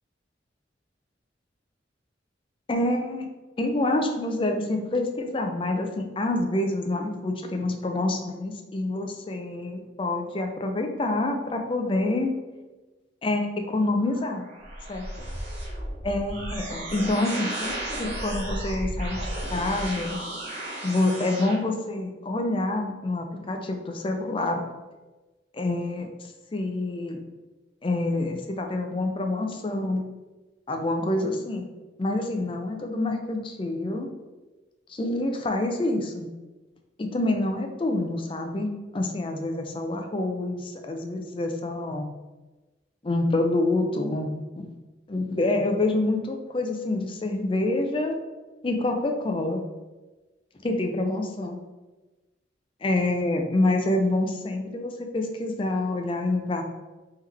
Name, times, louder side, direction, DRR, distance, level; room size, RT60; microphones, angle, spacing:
voice 1, 2.7-3.3 3.6-12.4 13.2-14.4 14.9-15.3 16.0-19.2 19.5-20.2 20.8-24.6 25.5-26.1 26.5-27.2 27.8-30.0 30.7-31.6 32.0-34.1 34.9-36.3 37.0-42.1 43.0-44.7 45.1-48.2 48.6-49.6 50.6-51.6 52.8-56.6, left 2 dB, 30° left, 4 dB, 0.4 m, -27 dB
sound 1, 13.9-21.5, right 1 dB, 35° right, 0.8 m, -34 dB
3.6 x 3.3 x 3.3 m, 1.2 s
head